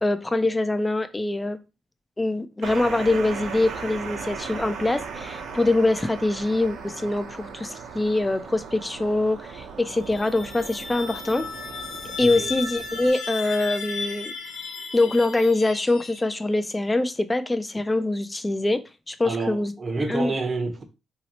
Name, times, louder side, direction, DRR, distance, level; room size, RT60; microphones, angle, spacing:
voice 1, 0.0-1.6 2.2-11.5 12.2-14.3 14.9-19.7 20.1-20.3, left 2 dB, 15° left, 0.4 m, -24 dB
sound 1, 2.6-13.1, right 5 dB, 80° right, 0.9 m, -38 dB
sound 2, 10.0-16.6, left 5 dB, 70° left, 0.6 m, -35 dB
voice 2, 19.2-20.8, right 3 dB, 35° right, 0.7 m, -28 dB
3.1 x 2.7 x 2.9 m
cardioid pair, 90°, 0 cm